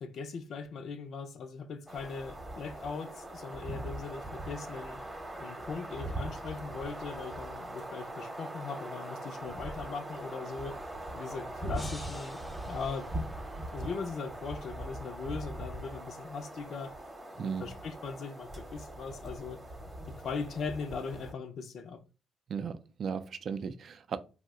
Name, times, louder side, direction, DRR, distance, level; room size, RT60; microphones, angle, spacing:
voice 1, 0.0-5.0 5.4-10.8 11.1-12.4 12.7-13.1 13.7-17.0 17.3-19.6 20.1-22.0, left 5 dB, 65° left, 0.4 m, -39 dB
sound 1, 1.9-21.3, right 1 dB, 20° right, 0.8 m, -41 dB
sound 2, 11.7-13.9, left 1 dB, 10° left, 0.5 m, -50 dB
voice 2, 22.5-24.2, right 6 dB, 55° right, 0.4 m, -36 dB
2.7 x 2.1 x 3.5 m
cardioid pair, 90°, 0 cm